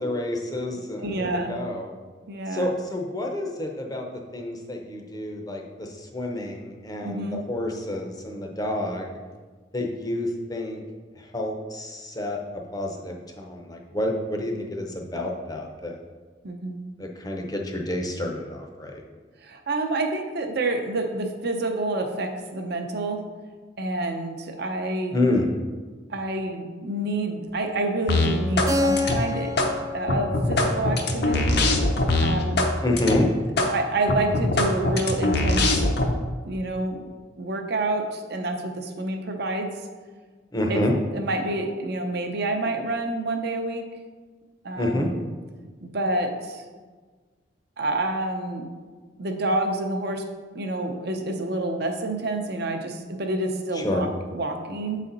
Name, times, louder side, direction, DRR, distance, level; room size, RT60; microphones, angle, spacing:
voice 1, 0.0-1.9 2.5-9.2 9.7-10.8 11.2-12.4 12.7-16.0 17.0-19.0 25.1-25.5 32.8-33.3 40.5-40.9 44.7-45.1 53.7-54.0, left 1 dB, 20° left, 2 dB, 0.7 m, -28 dB
voice 2, 1.0-1.6 2.3-2.7 7.0-7.4 16.4-16.8 19.4-23.2 23.8-25.2 26.1-29.5 29.9-31.6 32.2-32.6 33.7-35.8 36.4-37.0 37.4-39.7 40.7-40.8 41.1-43.8 44.6-45.2 45.8-46.6 47.8-48.7 49.2-50.2 50.5-55.0, right 2 dB, 55° right, 4 dB, 0.7 m, -28 dB
sound 1, 28.1-28.7 29.0-29.7 30.1-32.7 33.0-33.2 33.6-33.7 34.1-36.1, left 2 dB, 55° left, 0.7 m, -22 dB
Keyboard (musical), 28.7-33.2, left 2 dB, 15° right, 0.4 m, -31 dB
7.5 x 4.2 x 3.9 m, 1.4 s
head